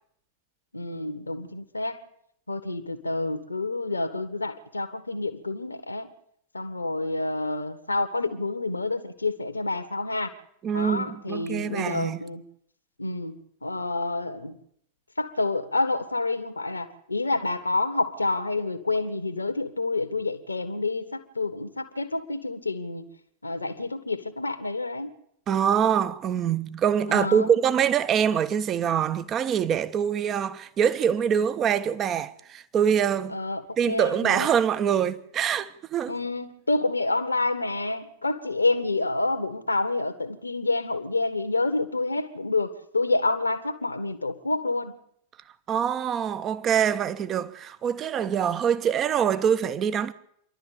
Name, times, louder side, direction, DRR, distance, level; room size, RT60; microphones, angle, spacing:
voice 1, 0.7-2.0 2.5-6.1 6.5-10.3 10.7-12.4 13.0-13.3 13.6-14.6 15.2-23.0 23.4-25.1 27.1-27.6 33.3-34.5 36.1-44.9, left 2 dB, 80° left, 1.7 m, -28 dB
voice 2, 10.6-12.2 25.5-33.4 33.8-36.1 45.7-50.1, right 8 dB, 30° right, 1.2 m, -24 dB
27.0 x 12.0 x 8.7 m
figure-of-eight pair, 90°, 0 cm